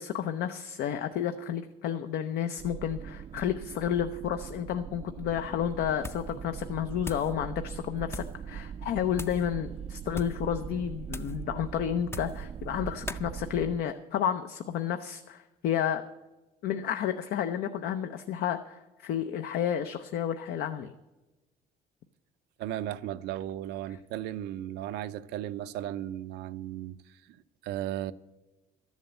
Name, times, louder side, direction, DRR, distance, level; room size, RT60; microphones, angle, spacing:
voice 1, 0.0-16.1 16.6-20.9, left 9 dB, 70° left, 0.6 m, -31 dB
sound 1, 2.6-13.8, right 8 dB, 40° right, 0.4 m, -41 dB
sound 2, 6.0-6.4 6.6-7.3 8.0-8.4 9.1-9.5 10.1-10.4 11.1-11.4 12.0-12.4 13.1-13.3, left 2 dB, 15° left, 0.5 m, -41 dB
voice 2, 22.6-27.0 27.3-27.4 27.6-28.1, right 12 dB, 85° right, 0.6 m, -35 dB
12.5 x 7.3 x 8.1 m
cardioid pair, 110°, 17 cm